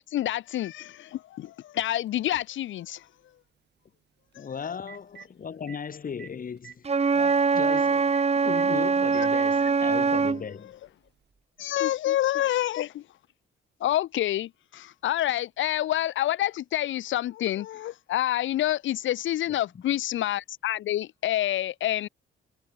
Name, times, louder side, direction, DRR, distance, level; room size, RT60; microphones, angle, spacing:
voice 1, 0.1-3.1 4.3-4.5 9.2-9.3 11.6-13.0 13.8-22.1, left 13 dB, 75° left, 1.3 m, -28 dB
Telephone, 2.1-2.2 4.3-4.4 4.7-5.3 5.7-5.8 6.2-6.3 6.6-6.7 7.2-7.3 7.7-7.8 8.1-8.7 9.7-9.8 11.2-11.3, right 9 dB, 60° right, 4.6 m, -46 dB
voice 2, 4.3-10.8 19.7-19.8, left 6 dB, 45° left, 4.2 m, -37 dB
Wind instrument woodwind instrument, 6.8-10.4, right 5 dB, 30° right, 3.0 m, -23 dB
cardioid pair, 90°, 20 cm